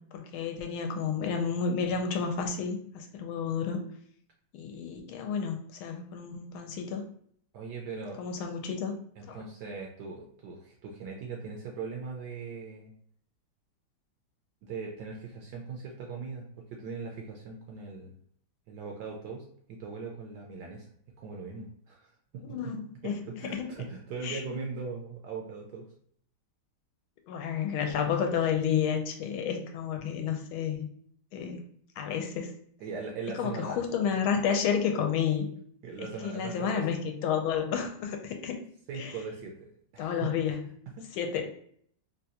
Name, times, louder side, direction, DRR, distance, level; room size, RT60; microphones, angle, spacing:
voice 1, 0.1-3.8 4.5-7.1 8.2-9.0 9.3-9.4 22.4-23.7 24.2-24.4 27.3-30.9 31.3-31.6 32.0-32.5 33.3-35.5 36.0-38.6 38.9-39.2 40.0-40.6 41.1-41.5, left 7 dB, 85° left, 4 dB, 1.5 m, -31 dB
voice 2, 7.5-8.2 9.2-12.9 14.6-18.2 18.7-20.9 21.2-22.8 23.0-25.9 32.8-33.8 35.8-36.8 38.9-40.3 40.9-41.2, right 4 dB, 75° right, 0 dB, 1.0 m, -40 dB
3.9 x 2.3 x 2.7 m, 0.63 s
omnidirectional pair, 2.2 m